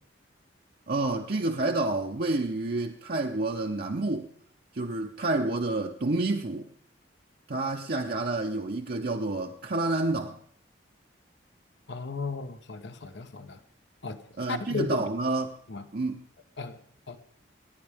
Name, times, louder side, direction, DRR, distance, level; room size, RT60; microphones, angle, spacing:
voice 1, 0.9-4.3 4.7-6.7 7.5-10.4 14.4-15.6 15.9-16.2, right 2 dB, 50° right, 0.7 m, -29 dB
voice 2, 11.9-13.6 14.0-14.2 14.5-15.1 15.7-15.8 16.6-16.8 17.1-17.2, left 4 dB, 65° left, 0.9 m, -35 dB
28.5 x 9.9 x 3.5 m
head